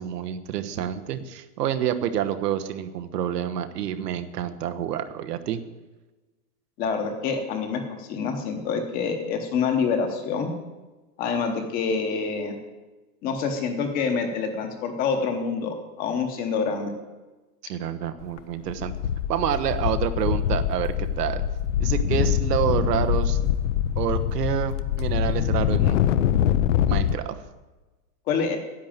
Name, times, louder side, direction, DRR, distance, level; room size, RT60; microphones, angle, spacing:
voice 1, 0.0-5.6 17.6-18.9 19.3-21.4 21.8-23.4 24.0-26.0 26.9-27.4, right 10 dB, 85° right, 9 dB, 1.3 m, -28 dB
voice 2, 6.8-10.5 11.2-12.5 13.2-16.9 28.3-28.6, left 5 dB, 20° left, 6 dB, 0.9 m, -26 dB
sound 1, 18.2-18.4 18.7-27.2, left 10 dB, 55° left, 0.6 m, -24 dB
10.5 x 8.1 x 8.8 m, 1.2 s
supercardioid pair, 175°, 46 cm